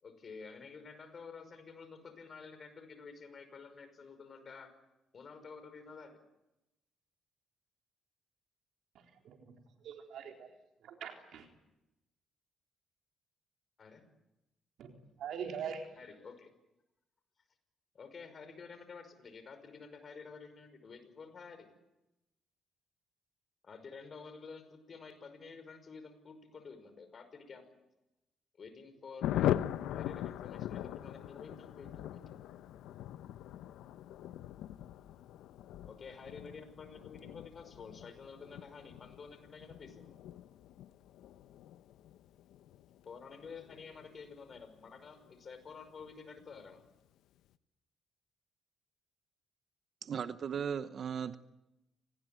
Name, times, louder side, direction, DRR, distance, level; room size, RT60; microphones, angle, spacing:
voice 1, 0.0-4.7 5.1-6.2 13.8-14.1 16.0-16.5 17.9-21.7 23.6-27.7 28.6-29.6 29.9-32.2 35.8-40.2 43.1-46.8, left 5 dB, 45° left, 9 dB, 5.5 m, -50 dB
voice 2, 8.9-9.5 9.8-10.5 10.8-11.5 14.8-14.9 15.2-15.8, right 7 dB, 75° right, 3 dB, 3.9 m, -43 dB
Thunder, 29.2-45.3 45.6-45.7 46.0-46.1 46.4-46.8, left 12 dB, 85° left, 0.8 m, -41 dB
voice 3, 50.0-51.4, right 7 dB, 55° right, 12 dB, 0.9 m, -37 dB
26.5 x 19.0 x 9.2 m, 0.93 s
cardioid pair, 90°, 0 cm